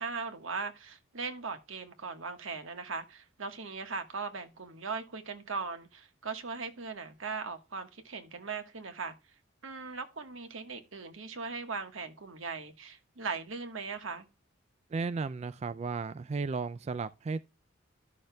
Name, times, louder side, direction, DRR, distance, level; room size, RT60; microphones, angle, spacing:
voice 1, 0.0-9.1 9.6-14.3, right 4 dB, 85° right, 1.4 m, -39 dB
voice 2, 14.9-17.4, right 4 dB, 35° right, 0.3 m, -34 dB
13.0 x 6.5 x 2.3 m
head